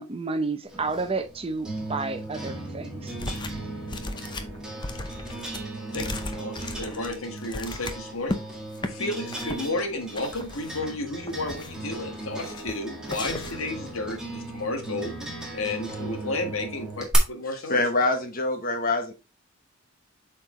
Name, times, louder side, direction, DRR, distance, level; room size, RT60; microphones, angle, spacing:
voice 1, 0.0-3.1, right 3 dB, 25° right, 0.7 m, -31 dB
sound 1, 0.7-17.2, right 2 dB, 5° right, 1.8 m, -37 dB
sound 2, 3.2-3.6 3.9-8.4 8.7-8.9 9.3-9.7 10.2-10.9 11.3-11.9 12.4-12.8 13.1-13.7, left 2 dB, 20° left, 0.7 m, -36 dB
voice 2, 5.9-8.4 8.9-15.1 15.5-18.0, left 2 dB, 70° left, 1.5 m, -32 dB
voice 3, 17.7-19.1, left 2 dB, 40° left, 1.2 m, -25 dB
7.6 x 4.5 x 3.2 m
head